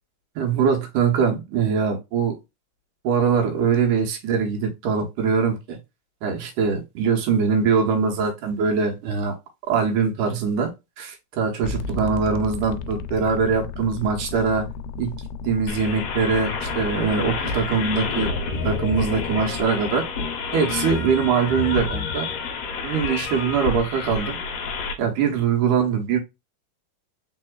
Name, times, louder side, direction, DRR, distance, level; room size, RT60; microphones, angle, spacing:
voice 1, 0.4-2.4 3.0-5.8 6.2-9.3 9.7-10.7 11.0-14.7 15.0-15.2 15.4-18.3 18.6-20.0 20.5-22.3 22.8-24.4 25.0-26.2, right 6 dB, 75° right, 2.4 m, -22 dB
sound 1, 11.6-19.6, left 5 dB, 85° left, 2.1 m, -34 dB
sound 2, 15.7-24.9, left 4 dB, 70° left, 1.6 m, -29 dB
4.3 x 4.2 x 2.3 m
omnidirectional pair, 3.7 m